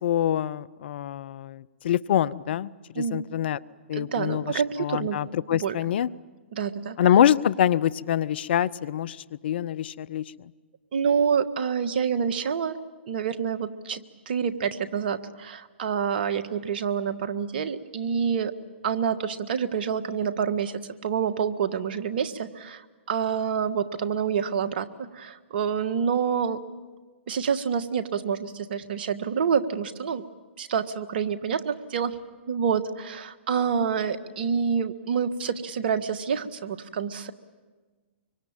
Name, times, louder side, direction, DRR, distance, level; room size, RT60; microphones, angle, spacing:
voice 1, 0.0-2.7 3.0-3.6 3.9-6.1 7.0-10.5, left 10 dB, 60° left, 21 dB, 0.7 m, -25 dB
voice 2, 2.9-3.3 3.9-5.2 5.5-5.7 6.5-7.0 10.9-12.8 13.1-14.0 14.3-18.5 18.8-26.6 27.3-30.2 30.6-32.2 32.5-37.3, right 7 dB, 60° right, 10 dB, 1.6 m, -27 dB
24.5 x 24.5 x 9.0 m, 1.3 s
hypercardioid pair, 130°, 6 cm